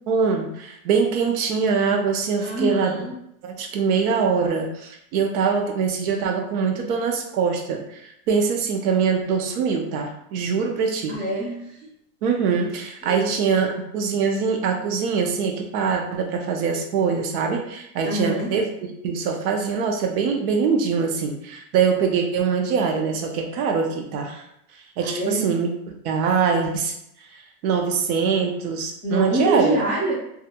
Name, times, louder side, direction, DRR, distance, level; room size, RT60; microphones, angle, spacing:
voice 1, 0.1-3.1 3.4-11.1 12.2-18.7 19.0-24.4 25.0-25.7 26.0-26.9 27.3-29.7, right 5 dB, 80° right, 3 dB, 0.6 m, -23 dB
voice 2, 2.4-3.1 11.1-11.9 13.0-13.4 18.0-18.5 25.0-25.4 29.0-30.1, right 1 dB, 20° right, -5 dB, 0.3 m, -26 dB
2.3 x 2.1 x 2.7 m, 0.78 s
supercardioid pair, 165°, 43 cm